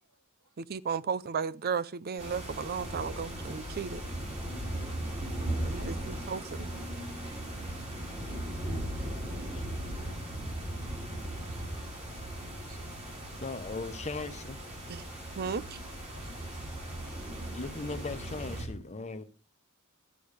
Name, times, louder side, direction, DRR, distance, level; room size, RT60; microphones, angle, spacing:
voice 1, 0.6-4.0 5.6-6.7 14.9-15.0 15.4-15.7, right 6 dB, 45° right, 0.5 m, -34 dB
sound 1, 2.2-18.7, right 1 dB, 30° right, 4.3 m, -38 dB
voice 2, 5.8-6.3 7.2-7.4 11.5-11.9 12.6-13.4 15.8-16.9 17.4-17.6, right 3 dB, 65° right, 2.6 m, -60 dB
voice 3, 13.4-14.6 17.5-19.2, left 3 dB, 30° left, 1.0 m, -38 dB
12.5 x 8.4 x 5.0 m
head